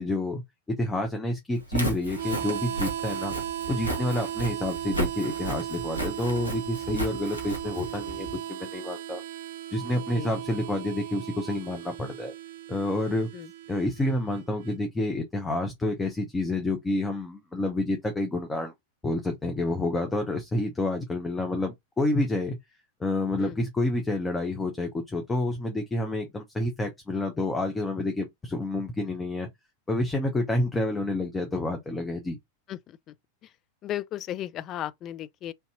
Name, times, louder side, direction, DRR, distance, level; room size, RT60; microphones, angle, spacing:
voice 1, 0.0-3.4 3.7-9.2 9.7-12.3 12.7-13.3 13.7-18.7 19.0-22.6 23.0-29.5 29.9-32.4, left 2 dB, 10° left, 0.8 m, -29 dB
Walk footsteps, 1.6-8.4, right 1 dB, 85° left, 1.6 m, -34 dB
Harmonica, 2.1-14.8, right 11 dB, 60° right, 0.5 m, -36 dB
voice 2, 32.7-33.1 33.4-33.5 33.8-35.5, left 12 dB, 35° left, 0.4 m, -35 dB
3.4 x 2.8 x 4.1 m
figure-of-eight pair, 90°, 0 cm